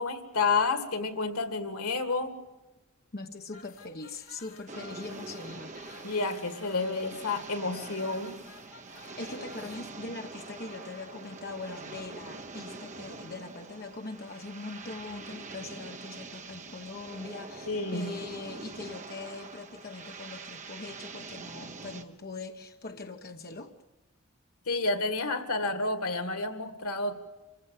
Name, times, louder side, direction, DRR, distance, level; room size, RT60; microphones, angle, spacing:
voice 1, 0.0-2.4 6.0-8.3 17.7-18.1 24.7-27.1, left 3 dB, 90° left, 9 dB, 2.2 m, -30 dB
voice 2, 3.1-5.8 9.2-23.7, left 3 dB, 45° left, 4 dB, 1.1 m, -41 dB
sound 1, 3.5-9.9, left 4 dB, 65° left, 3.7 m, -53 dB
sound 2, 4.7-22.0, right 3 dB, 35° right, 1.2 m, -44 dB
26.5 x 16.0 x 7.8 m, 1.1 s
head